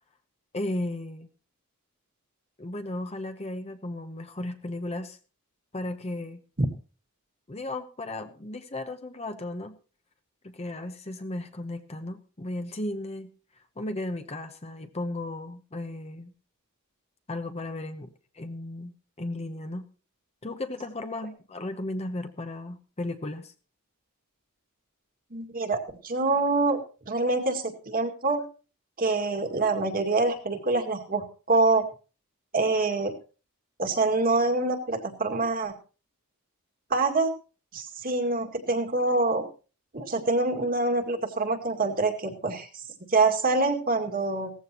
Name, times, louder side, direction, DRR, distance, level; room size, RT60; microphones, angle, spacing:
voice 1, 0.5-1.3 2.6-5.2 5.7-6.4 7.5-9.8 10.4-13.3 13.8-16.3 17.3-19.9 20.4-23.5, left 1 dB, 30° left, 7 dB, 0.9 m, -35 dB
voice 2, 25.3-26.8 27.1-28.4 29.0-31.9 32.5-33.1 33.8-35.7 36.9-37.3 37.7-39.5 39.9-42.7 43.1-44.5, right 3 dB, 40° right, 5 dB, 2.1 m, -25 dB
17.5 x 14.5 x 3.0 m, 0.35 s
head